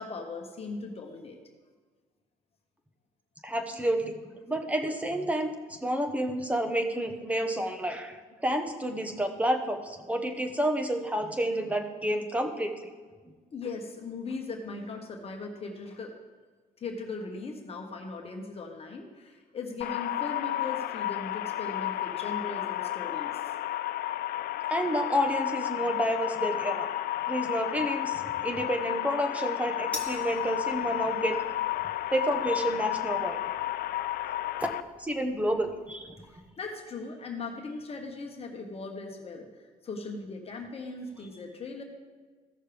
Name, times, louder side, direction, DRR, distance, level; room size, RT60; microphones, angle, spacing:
voice 1, 0.0-1.4 13.5-16.1 16.8-23.5 36.3-41.8, left 3 dB, 35° left, 2 dB, 1.2 m, -39 dB
voice 2, 3.4-4.2 4.5-12.7 24.7-26.9 27.3-31.4 32.1-33.4 35.0-36.1, equal, 10° right, 5 dB, 1.0 m, -29 dB
sound 1, 19.8-34.8, left 14 dB, 65° left, 0.4 m, -32 dB
sound 2, 29.9-36.5, left 2 dB, 5° left, 1.3 m, -48 dB
15.5 x 6.5 x 3.4 m, 1.5 s
cardioid pair, 110°, 17 cm